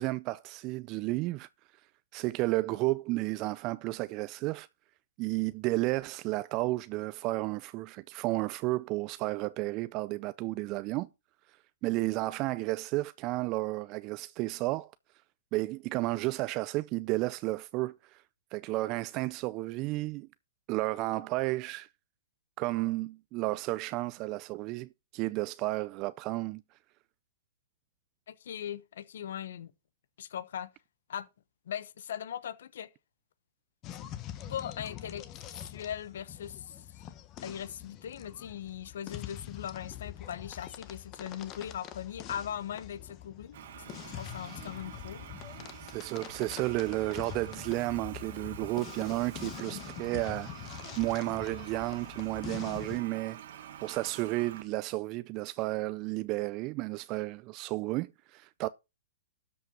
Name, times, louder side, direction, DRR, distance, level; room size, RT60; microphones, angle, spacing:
voice 1, 0.0-1.5 2.1-4.7 5.2-11.1 11.8-14.9 15.5-18.2 18.5-20.3 20.7-21.9 22.6-26.6 45.8-53.4 53.8-58.7, right 20 dB, 35° right, 0.4 m, -32 dB
voice 2, 28.3-29.7 30.2-30.7 31.1-31.3 31.7-32.9 34.5-35.2 35.6-37.0 37.4-43.6 44.2-45.3 49.6-49.8, left 9 dB, 65° left, 0.9 m, -39 dB
sound 1, 33.8-53.0, left 11 dB, 30° left, 1.3 m, -45 dB
Toilet flush, 43.5-54.6, right 10 dB, 60° right, 1.6 m, -47 dB
12.5 x 5.6 x 5.2 m
hypercardioid pair, 125°, 0 cm